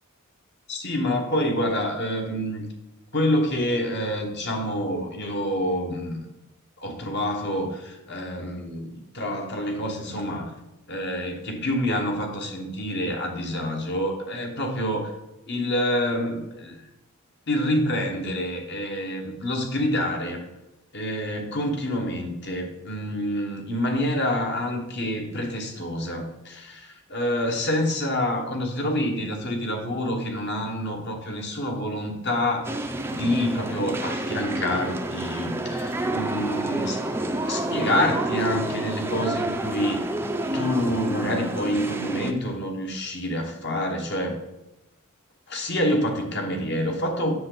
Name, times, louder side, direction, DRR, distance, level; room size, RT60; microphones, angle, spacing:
voice 1, 0.7-2.6 3.1-6.2 6.8-10.5 10.9-15.1 15.5-16.8 17.5-20.4 20.9-37.0 37.5-40.1 40.5-44.4 45.5-47.3, left 1 dB, 55° left, 3 dB, 1.4 m, -27 dB
sound 1, 32.6-42.3, right 1 dB, 10° right, 0.5 m, -29 dB
7.6 x 6.7 x 4.0 m, 0.96 s
head